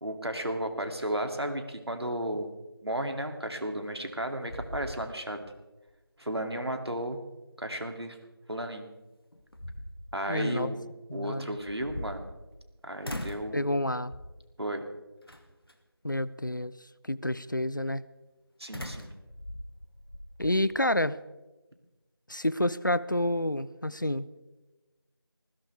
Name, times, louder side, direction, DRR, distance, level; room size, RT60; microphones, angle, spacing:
voice 1, 0.0-2.5 2.8-5.4 6.2-7.2 7.6-8.2 8.5-8.9 10.1-10.8 11.1-12.3 12.8-13.7 14.6-14.9 18.6-19.1, right 1 dB, 90° right, 5 dB, 2.7 m, -34 dB
sound 1, 3.8-4.2 4.5-5.5 5.9-6.0 8.7-8.8 9.3-10.2 11.6-12.7 13.0-13.5 14.1-14.5 15.3-15.7 18.7-20.6, left 1 dB, 65° left, 2.2 m, -41 dB
voice 2, 10.3-10.7 11.1-11.6 13.5-14.1 16.0-16.8 17.1-18.0 20.4-21.2 22.3-24.3, left 1 dB, 50° left, 18 dB, 0.6 m, -29 dB
19.5 x 16.5 x 3.5 m, 1.1 s
figure-of-eight pair, 180°, 13 cm